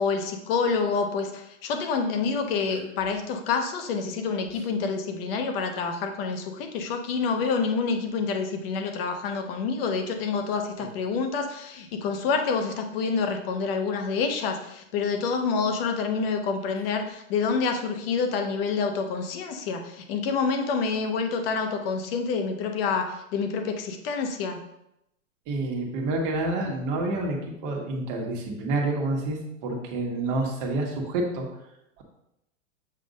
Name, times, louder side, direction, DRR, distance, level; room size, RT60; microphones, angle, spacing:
voice 1, 0.0-24.6, left 5 dB, 45° left, 5 dB, 0.9 m, -27 dB
voice 2, 25.5-31.5 32.0-32.1, right 2 dB, 40° right, 0 dB, 1.3 m, -28 dB
7.6 x 2.6 x 5.2 m, 0.83 s
hypercardioid pair, 145°, 40 cm